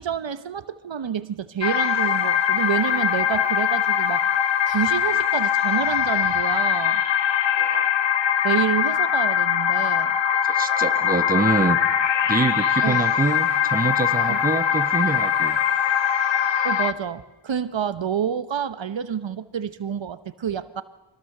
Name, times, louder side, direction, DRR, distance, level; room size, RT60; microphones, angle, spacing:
voice 1, 0.0-4.3 4.7-7.0 8.4-10.1 12.8-13.0 14.3-14.4 15.5-15.6 16.6-20.8, right 8 dB, 75° right, 13 dB, 1.0 m, -28 dB
sound 1, 1.6-16.9, left 8 dB, 70° left, 1.1 m, -22 dB
voice 2, 7.6-7.9 10.4-11.8 12.3-15.6, right 3 dB, 20° right, 10 dB, 1.0 m, -25 dB
24.5 x 18.5 x 6.6 m, 1.1 s
wide cardioid pair, 100°, 45 cm